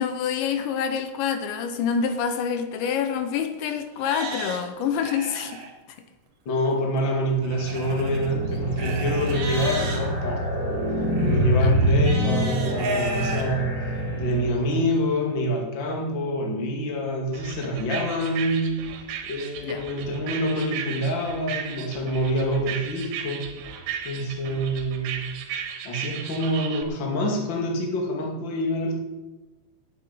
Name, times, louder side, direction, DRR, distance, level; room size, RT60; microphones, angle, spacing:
voice 1, 0.0-5.6 5.9-6.0 11.6-11.7 19.6-19.9, left 7 dB, 75° left, 8 dB, 2.9 m, -27 dB
Livestock farm animals working animals, 2.8-2.9 3.5-3.6 4.0-5.7 7.4-10.0 11.1-13.4 14.0-14.1 14.7-14.8, right 3 dB, 65° right, 1.5 m, -35 dB
voice 2, 6.5-10.7 11.2-13.7 14.1-18.9 19.3-23.5 24.0-25.3 25.8-28.9, equal, 40° left, 0 dB, 1.8 m, -26 dB
sound 1, 7.4-14.8, equal, ahead, 4.4 m, -25 dB
sound 2, 17.3-26.8, right 8 dB, 85° right, 3.9 m, -36 dB
9.2 x 8.7 x 8.8 m, 1.1 s
omnidirectional pair, 5.8 m